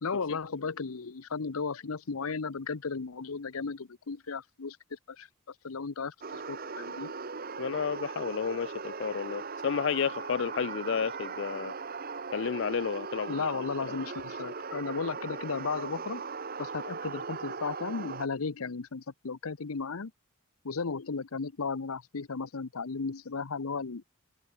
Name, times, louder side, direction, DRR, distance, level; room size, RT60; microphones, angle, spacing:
voice 1, 0.0-5.3 5.6-7.1 13.3-16.2 16.6-20.1 20.6-24.1, left 4 dB, 80° left, 0.8 m, -35 dB
sound 1, 6.2-18.3, right 5 dB, 45° right, 1.1 m, -39 dB
voice 2, 7.6-11.7 12.3-13.4, left 6 dB, 60° left, 0.4 m, -31 dB
open air
head